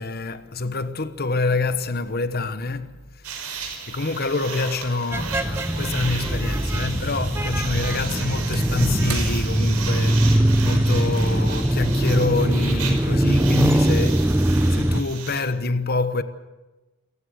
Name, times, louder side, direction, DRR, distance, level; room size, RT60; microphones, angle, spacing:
voice 1, 0.0-3.3 3.9-16.2, left 3 dB, 45° left, 1.1 m, -26 dB
sound 1, 3.2-15.4, right 6 dB, 90° right, 5.5 m, -35 dB
sound 2, 5.1-15.0, right 1 dB, 10° right, 0.7 m, -21 dB
Slam / Wood, 8.5-12.3 12.7-12.8, right 4 dB, 70° right, 4.8 m, -41 dB
28.0 x 15.5 x 8.1 m
head